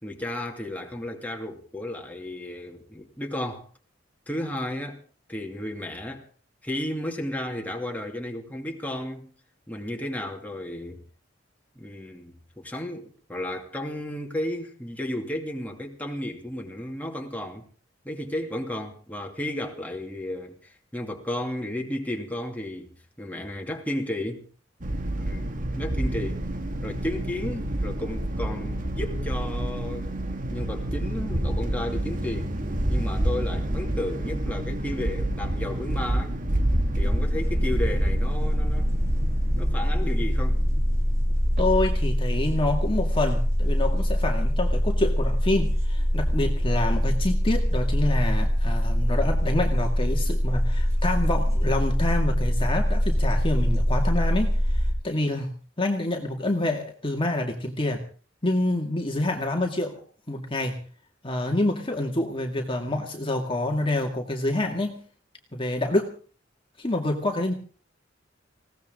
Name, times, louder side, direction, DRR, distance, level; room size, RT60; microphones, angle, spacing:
voice 1, 0.0-3.6 4.3-5.0 5.3-6.3 6.6-9.3 9.7-11.0 11.7-17.7 18.0-24.4 25.2-26.4 26.8-30.1 30.5-32.5 32.9-36.4 37.0-38.9 39.6-40.6, left 1 dB, 10° left, 2.7 m, -33 dB
sound 1, 24.8-44.5, right 1 dB, 45° right, 2.0 m, -29 dB
sound 2, 36.9-54.9, equal, 15° right, 5.4 m, -24 dB
voice 2, 41.6-55.5 55.8-58.0 58.4-60.0 60.3-60.8 61.2-65.0 65.5-66.1 66.8-67.5, left 1 dB, 30° left, 2.2 m, -27 dB
20.5 x 17.5 x 3.8 m
head